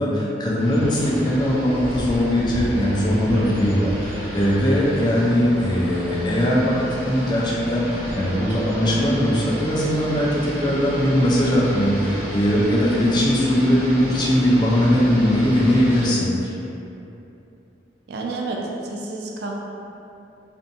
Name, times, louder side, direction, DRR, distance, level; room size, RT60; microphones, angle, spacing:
voice 1, 0.0-16.5, equal, 25° left, -5 dB, 0.3 m, -20 dB
sound 1, 0.6-16.1, equal, 35° right, 0.8 m, -31 dB
voice 2, 5.6-6.3 18.1-19.5, right 3 dB, 60° right, -1 dB, 0.3 m, -31 dB
2.5 x 2.2 x 2.6 m, 2.8 s
head